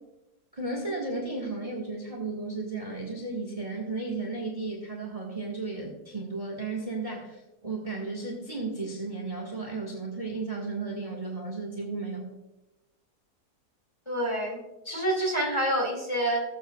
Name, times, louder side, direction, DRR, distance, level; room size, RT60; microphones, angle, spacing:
voice 1, 0.5-12.3, right 3 dB, 20° right, 0 dB, 1.5 m, -34 dB
voice 2, 14.1-16.4, right 1 dB, 15° left, -1 dB, 2.3 m, -28 dB
20.0 x 7.6 x 2.3 m, 0.99 s
omnidirectional pair, 1.7 m